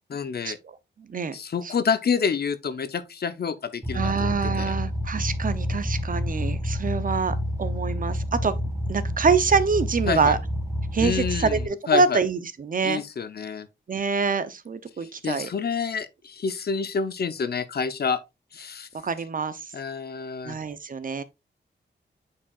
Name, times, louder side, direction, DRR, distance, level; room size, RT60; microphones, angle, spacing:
voice 1, 0.1-0.6 1.3-4.7 10.1-10.3 11.0-11.6 11.9-12.2 12.8-13.7 15.0-18.2 18.5-18.9 19.7-20.6, left 6 dB, 55° left, 0.7 m, -28 dB
sound 1, 3.8-11.6, equal, 15° right, 2.0 m, -29 dB
voice 2, 3.9-8.5 8.9-10.4 10.9-13.0 13.9-15.5 19.0-19.6 20.4-21.2, right 5 dB, 45° right, 0.7 m, -25 dB
8.7 x 4.7 x 2.4 m
wide cardioid pair, 135°, 19 cm